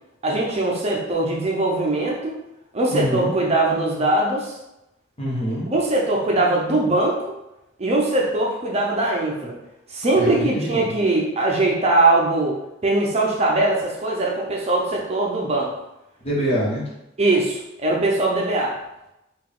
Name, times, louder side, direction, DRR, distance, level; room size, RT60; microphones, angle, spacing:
voice 1, 0.2-2.3 2.7-4.6 5.7-7.3 7.8-9.5 9.9-15.7 17.2-18.8, right 2 dB, 35° right, -2 dB, 0.6 m, -21 dB
voice 2, 2.9-3.3 5.2-5.7 10.1-10.8 16.2-16.8, equal, 35° left, -6 dB, 1.2 m, -24 dB
3.9 x 2.4 x 3.7 m, 0.89 s
head